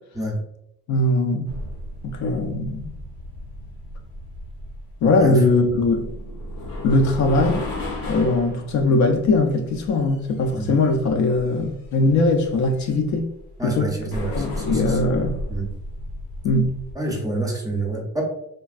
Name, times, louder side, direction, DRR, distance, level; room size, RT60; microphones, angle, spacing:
voice 1, 0.9-1.5 2.0-2.9 5.0-6.1 6.8-7.6 8.1-13.3 13.6-13.9 14.3-15.4 16.4-16.7, left 2 dB, 55° left, 0.4 m, -20 dB
sound 1, 1.5-16.9, left 1 dB, 80° left, 0.8 m, -34 dB
voice 2, 13.6-15.1 15.5-15.6 16.9-18.2, right 2 dB, 10° right, 0.5 m, -28 dB
3.3 x 2.2 x 2.4 m
cardioid pair, 120°, 36 cm